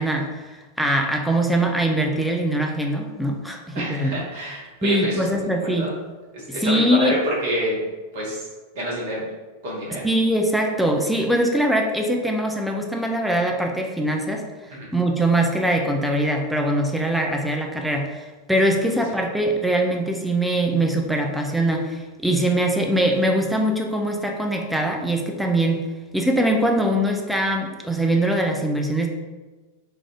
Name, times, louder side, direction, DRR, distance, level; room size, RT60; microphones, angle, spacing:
voice 1, 0.0-4.1 4.8-5.9 6.6-7.2 10.0-14.4 14.9-25.8 26.1-29.1, right 1 dB, ahead, 1 dB, 0.3 m, -22 dB
voice 2, 3.7-5.9 6.3-7.8 8.1-8.5 8.7-9.2 9.6-10.0 14.7-14.9 18.8-19.0, equal, 55° right, -4 dB, 1.0 m, -27 dB
3.2 x 2.4 x 2.3 m, 1.2 s
figure-of-eight pair, 90°, 0 cm